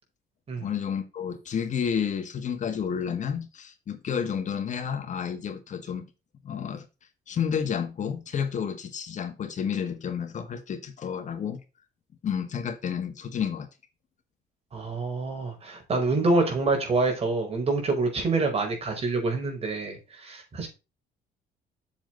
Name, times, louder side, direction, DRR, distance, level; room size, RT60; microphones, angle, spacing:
voice 1, 0.6-6.0 6.4-6.8 7.3-11.6 12.2-13.7, left 7 dB, 45° left, 1.7 m, -30 dB
voice 2, 14.7-20.7, right 3 dB, 35° right, 5.0 m, -26 dB
7.6 x 7.5 x 4.0 m
cardioid pair, 110°, 17 cm